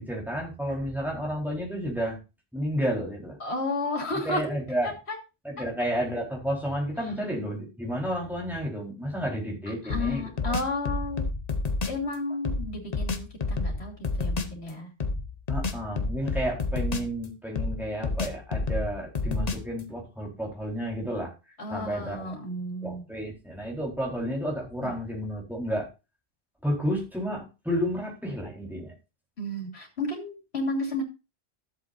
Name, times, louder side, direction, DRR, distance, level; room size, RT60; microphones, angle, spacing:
voice 1, 0.0-2.2 2.5-3.4 4.2-4.9 5.4-10.6 15.5-21.3 21.7-22.4 22.8-25.9 26.6-28.9, equal, ahead, -3 dB, 4.3 m, -31 dB
voice 2, 3.4-4.4 4.8-5.2 9.8-11.2 11.8-14.9 21.6-23.1 24.8-24.9 29.4-31.0, left 2 dB, 75° left, 1 dB, 3.3 m, -32 dB
sound 1, 9.9-12.0 12.4-14.6 15.0-17.2 17.5-19.8, left 3 dB, 40° left, 1.0 m, -30 dB
13.5 x 7.8 x 2.7 m, 0.28 s
omnidirectional pair, 1.1 m